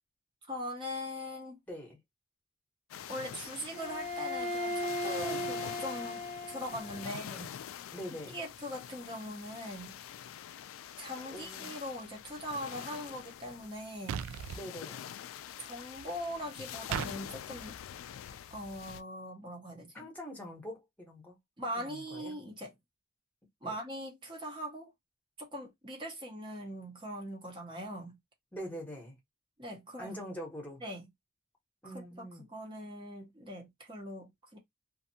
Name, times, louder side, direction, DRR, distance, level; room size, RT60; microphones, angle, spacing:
voice 1, 0.5-1.6 3.1-7.5 8.3-10.0 11.0-14.3 15.6-17.8 18.5-20.1 21.6-22.7 23.6-24.9 25.4-28.2 29.6-30.1 30.8-31.0 31.8-34.6, equal, 25° right, 0.8 m, -41 dB
voice 2, 1.7-2.0 7.1-7.3 7.9-8.4 11.3-11.7 14.6-15.0 19.9-21.4 21.8-22.4 23.6-23.7 28.5-29.2 30.0-30.8 31.8-32.5, equal, 10° left, 1.0 m, -44 dB
sound 1, 2.9-19.0, left 9 dB, 80° left, 0.3 m, -46 dB
Bowed string instrument, 3.7-7.2, left 1 dB, 70° right, 0.8 m, -37 dB
sound 2, 14.1-14.6 16.9-17.1, right 8 dB, 85° right, 0.3 m, -35 dB
2.6 x 2.4 x 2.7 m
head